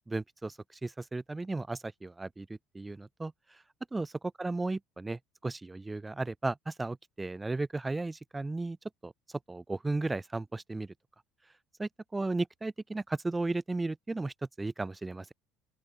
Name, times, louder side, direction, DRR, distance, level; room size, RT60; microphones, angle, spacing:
voice 1, 0.1-2.5 2.7-3.3 3.9-4.1 4.4-8.8 9.0-9.1 9.5-10.9 11.8-15.3, right 2 dB, 15° right, 4.2 m, -35 dB
open air
hypercardioid pair, 70°, 0 cm